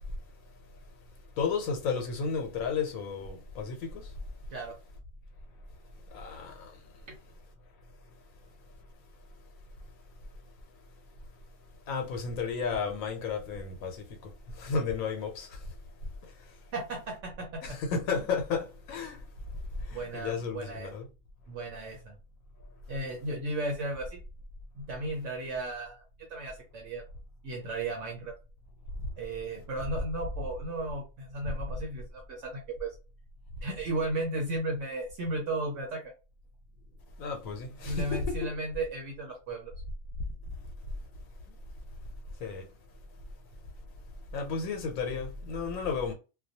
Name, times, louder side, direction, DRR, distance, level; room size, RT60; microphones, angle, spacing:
voice 1, 1.4-4.1 6.1-6.7 11.9-15.6 16.2-16.3 17.6-19.2 19.8-21.1 37.2-38.5 42.4-42.7 44.3-46.1, left 5 dB, 90° left, 1.0 m, -33 dB
voice 2, 16.7-17.8 18.1-18.2 19.9-20.9 21.5-22.2 22.9-24.2 24.7-26.0 26.3-27.0 27.4-28.4 29.2-32.9 33.6-36.1 37.9-39.7, right 2 dB, 65° right, 0.9 m, -35 dB
2.3 x 2.2 x 2.7 m
omnidirectional pair, 1.4 m